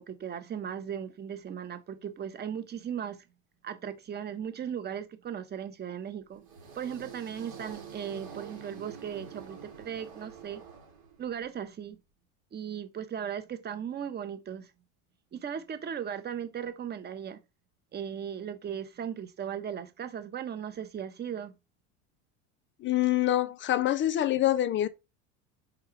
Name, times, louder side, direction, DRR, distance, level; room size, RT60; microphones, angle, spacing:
voice 1, 0.0-3.2 3.6-6.4 6.7-10.6 11.2-12.0 12.5-14.7 15.3-17.4 17.9-21.5, right 8 dB, 25° right, 0.7 m, -37 dB
sound 1, 6.3-11.5, right 7 dB, 85° right, 2.6 m, -47 dB
voice 2, 22.8-24.9, left 13 dB, 30° left, 0.5 m, -25 dB
4.9 x 2.3 x 4.5 m
supercardioid pair, 95°, 41 cm